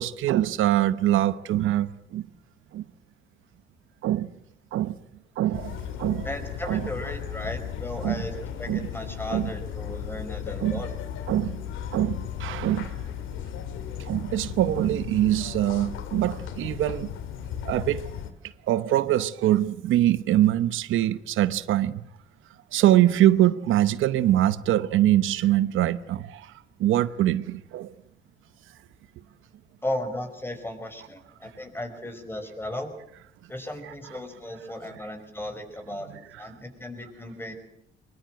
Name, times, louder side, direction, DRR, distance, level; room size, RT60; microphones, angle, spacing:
voice 1, 0.0-2.3 2.7-2.8 4.0-4.3 4.7-4.9 5.4-6.3 6.7-6.9 8.0-8.2 8.7-8.9 9.3-9.5 10.6-10.8 11.3-11.6 11.9-13.0 14.0-17.1 17.6-18.1 18.7-22.0 22.7-26.5 26.8-27.9, right 13 dB, 85° right, 0.9 m, -23 dB
sound 1, 5.5-18.3, left 9 dB, 85° left, 2.1 m, -35 dB
voice 2, 6.2-10.9 29.8-32.9 33.5-37.5, left 1 dB, 10° left, 5.0 m, -35 dB
23.0 x 22.0 x 7.8 m
cardioid pair, 90°, 20 cm